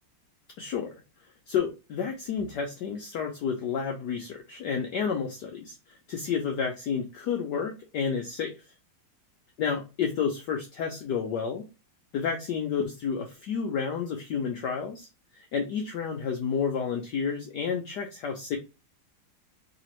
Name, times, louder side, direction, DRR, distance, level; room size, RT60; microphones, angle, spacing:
voice 1, 0.6-0.9 1.5-8.6 9.6-11.6 12.1-15.1 15.4-18.6, left 6 dB, 65° left, 3 dB, 1.1 m, -30 dB
4.1 x 2.9 x 3.0 m, 0.29 s
omnidirectional pair, 2.3 m